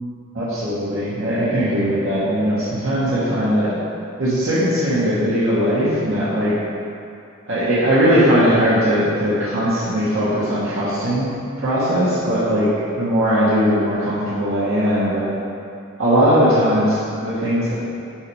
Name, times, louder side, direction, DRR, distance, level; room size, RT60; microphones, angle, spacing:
voice 1, 0.3-3.8 4.2-6.5 7.5-11.3 11.6-12.7 13.0-15.2 16.0-17.7, equal, 75° right, -10 dB, 1.4 m, -19 dB
6.1 x 4.9 x 5.3 m, 2.5 s
head